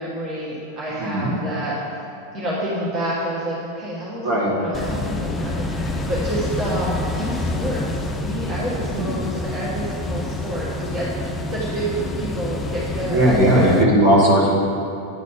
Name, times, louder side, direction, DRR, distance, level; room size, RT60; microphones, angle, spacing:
voice 1, 0.0-13.7, right 1 dB, 35° right, -7 dB, 1.7 m, -28 dB
voice 2, 1.0-1.3 4.2-4.5 8.9-9.1 13.1-14.5, right 1 dB, 55° right, -5 dB, 1.9 m, -17 dB
sound 1, 4.7-13.8, left 2 dB, 15° left, 0.5 m, -28 dB
9.6 x 4.1 x 5.7 m, 2.7 s
figure-of-eight pair, 90°, 0 cm